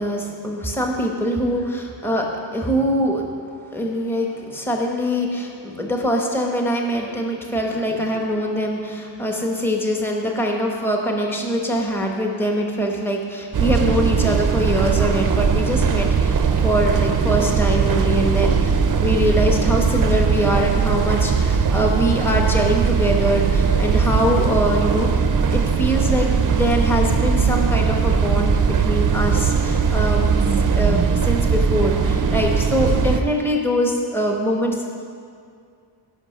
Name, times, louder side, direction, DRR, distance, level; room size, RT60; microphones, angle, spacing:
voice 1, 0.0-2.3 2.5-3.3 3.7-25.2 25.5-34.9, equal, 5° left, 0 dB, 1.1 m, -23 dB
sound 1, 13.5-33.2, right 6 dB, 45° right, 0.6 m, -19 dB
17.0 x 5.7 x 6.5 m, 2.3 s
wide cardioid pair, 170°, 44 cm